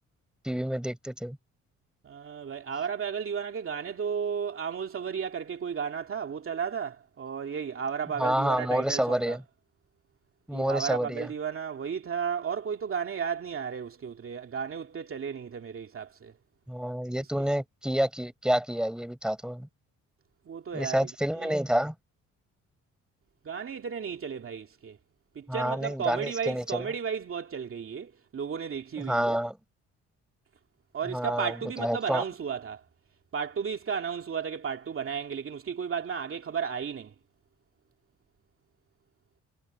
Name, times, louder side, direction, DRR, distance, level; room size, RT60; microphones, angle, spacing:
voice 1, 0.4-1.4 8.2-9.4 10.5-11.3 16.7-19.7 20.7-21.9 25.5-26.8 29.0-29.6 31.1-32.2, equal, 5° right, 4.7 m, -28 dB
voice 2, 2.0-9.4 10.5-16.3 20.5-21.0 21.4-21.6 23.4-25.0 25.4-29.4 30.9-32.8 33.3-37.1, right 7 dB, 45° right, 2.3 m, -34 dB
cardioid pair, 90°, 30 cm